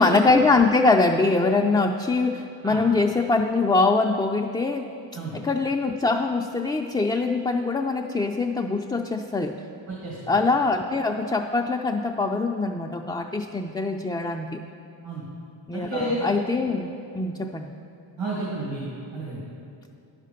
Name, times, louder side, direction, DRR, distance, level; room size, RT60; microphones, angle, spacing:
voice 1, 0.0-4.9 5.3-9.6 10.3-14.6 15.7-17.7, left 3 dB, 10° left, 1 dB, 0.4 m, -23 dB
voice 2, 9.9-10.3 15.0-15.2 15.7-16.2 18.2-19.4, right 2 dB, 80° right, -6 dB, 2.1 m, -31 dB
9.8 x 6.6 x 5.1 m, 2.7 s
cardioid pair, 60°, 45 cm